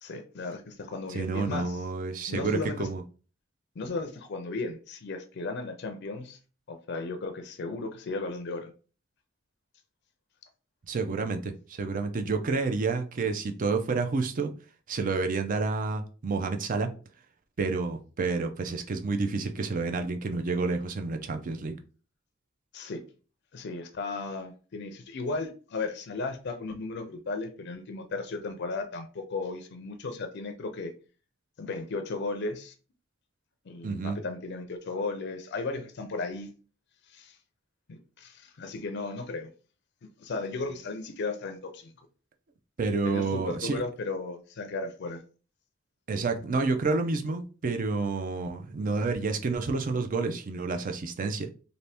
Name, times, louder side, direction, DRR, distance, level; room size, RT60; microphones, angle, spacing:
voice 1, 0.0-1.8 2.3-2.9 3.8-6.4 6.7-8.7 22.7-23.0 23.5-30.9 31.6-32.7 33.7-36.5 37.1-37.4 37.9-39.5 40.2-41.9 43.0-45.2, left 3 dB, 55° left, 0.4 m, -35 dB
voice 2, 1.1-3.0 10.9-14.5 14.9-16.9 17.6-21.8 33.8-34.2 42.8-43.8 46.1-51.5, right 4 dB, 40° right, 0.4 m, -29 dB
2.7 x 2.6 x 3.3 m
head